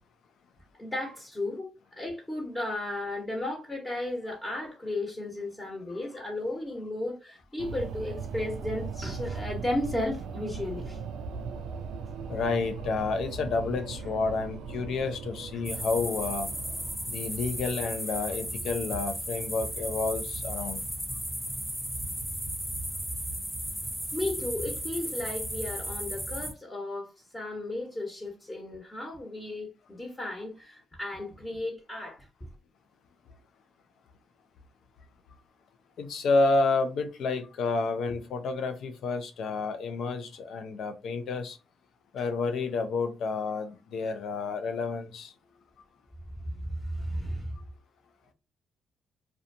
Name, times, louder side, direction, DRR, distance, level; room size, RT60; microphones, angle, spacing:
voice 1, 0.8-1.7 2.0-11.0 15.5-15.6 24.1-32.3 46.4-47.7, left 1 dB, 20° left, 1.1 m, -34 dB
sound 1, 7.6-17.0, right 5 dB, 80° right, 0.3 m, -38 dB
voice 2, 12.3-16.5 17.1-20.8 36.0-41.6 42.1-45.3, left 3 dB, 70° left, 0.5 m, -30 dB
sound 2, 15.6-26.5, right 1 dB, 5° right, 0.7 m, -35 dB
2.4 x 2.3 x 2.6 m
supercardioid pair, 55°, 0 cm